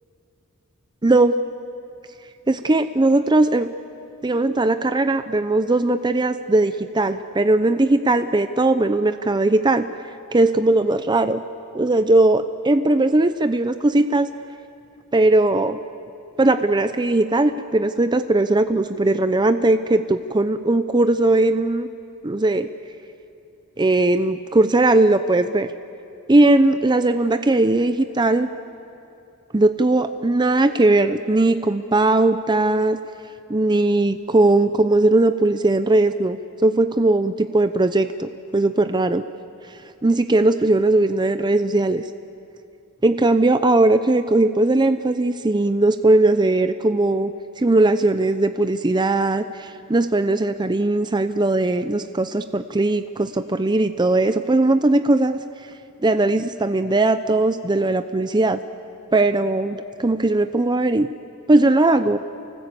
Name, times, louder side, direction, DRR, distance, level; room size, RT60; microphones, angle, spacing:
voice 1, 1.0-1.3 2.5-3.7 4.2-9.9 10.3-11.4 11.7-14.3 15.1-15.8 16.4-21.9 22.2-22.7 23.8-25.7 26.3-28.5 29.5-33.0 33.5-39.2 40.0-42.0 43.0-47.3 47.6-55.4 56.0-58.6 59.1-61.1 61.5-62.2, right 2 dB, 20° right, 10 dB, 0.6 m, -19 dB
29.0 x 19.0 x 8.3 m, 2.7 s
head